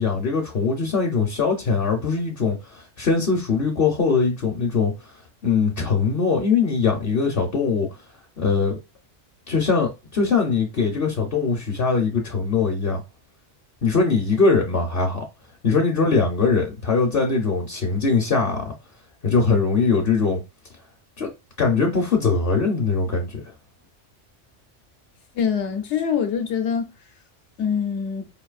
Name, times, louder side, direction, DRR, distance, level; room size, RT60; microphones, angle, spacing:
voice 1, 0.0-4.9 5.4-7.9 8.4-8.8 9.5-13.0 13.8-15.2 15.6-18.7 19.2-20.4 21.2-21.3 21.6-23.4, left 4 dB, 55° left, 0.9 m, -21 dB
voice 2, 25.4-26.9 27.6-28.3, left 7 dB, 75° left, 1.0 m, -24 dB
5.2 x 2.7 x 2.4 m
omnidirectional pair, 1.2 m